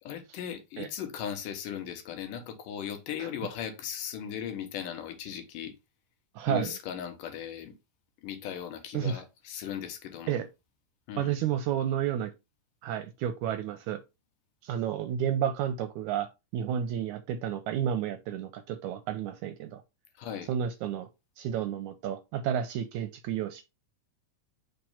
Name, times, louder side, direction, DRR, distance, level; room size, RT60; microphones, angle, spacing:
voice 1, 0.0-5.7 6.5-7.7 8.2-10.4 11.1-11.3 20.2-20.5, left 9 dB, 80° left, 2.6 m, -37 dB
voice 2, 6.4-6.8 8.9-9.2 10.3-10.5 11.2-12.3 12.8-14.0 14.6-16.3 16.5-19.8 20.5-21.1 21.4-23.6, right 9 dB, 80° right, 1.7 m, -31 dB
5.9 x 3.1 x 5.5 m
omnidirectional pair, 3.8 m